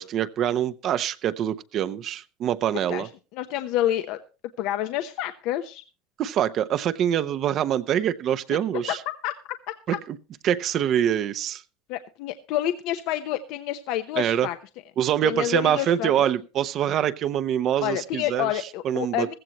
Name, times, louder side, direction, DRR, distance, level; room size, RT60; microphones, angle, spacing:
voice 1, 0.0-3.1 6.2-9.0 9.9-10.0 10.4-11.6 14.2-14.5 15.0-18.5 18.8-19.3, right 10 dB, 45° right, 0.7 m, -25 dB
voice 2, 2.9-4.2 4.6-5.8 8.5-8.6 9.2-9.3 11.9-14.6 15.2-16.1 17.8-19.3, left 13 dB, 65° left, 0.9 m, -28 dB
15.5 x 14.5 x 3.0 m
supercardioid pair, 120°, 0 cm